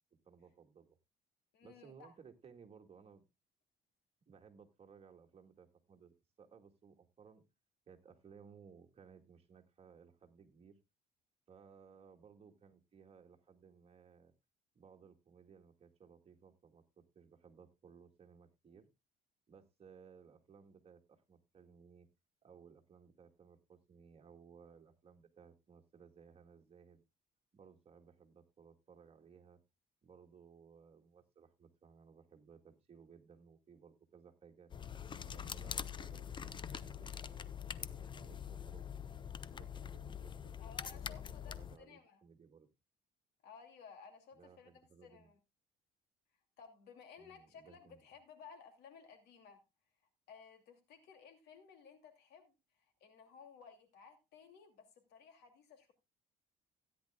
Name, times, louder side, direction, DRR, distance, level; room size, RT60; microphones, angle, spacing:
voice 1, 0.2-1.0 1.6-3.2 4.3-7.4 7.9-10.8 11.5-14.3 14.7-18.9 19.5-22.1 22.4-27.0 27.5-29.6 30.0-34.7 35.2-39.0 39.5-41.2 41.5-42.7 44.3-45.3 47.2-48.1, right 6 dB, 35° right, 1.9 m, -61 dB
voice 2, 1.5-2.1 40.6-42.2 43.4-45.4 46.6-49.6 50.3-52.5 53.0-55.9, left 6 dB, 75° left, 2.6 m, -57 dB
sound 1, 34.7-41.8, left 7 dB, 30° left, 0.6 m, -44 dB
16.5 x 10.0 x 2.3 m
cardioid pair, 110°, 17 cm